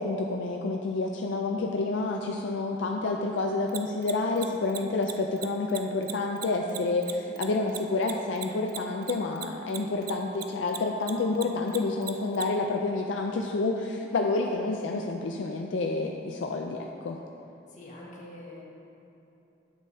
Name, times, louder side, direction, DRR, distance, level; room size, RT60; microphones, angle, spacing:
voice 1, 0.0-17.2, left 3 dB, 75° left, 2 dB, 0.4 m, -29 dB
Mechanisms, 3.7-10.4 10.7-12.4, right 13 dB, 50° right, 0.4 m, -37 dB
voice 2, 17.7-18.6, left 1 dB, 40° left, -4 dB, 1.4 m, -44 dB
10.5 x 7.4 x 2.7 m, 2.9 s
head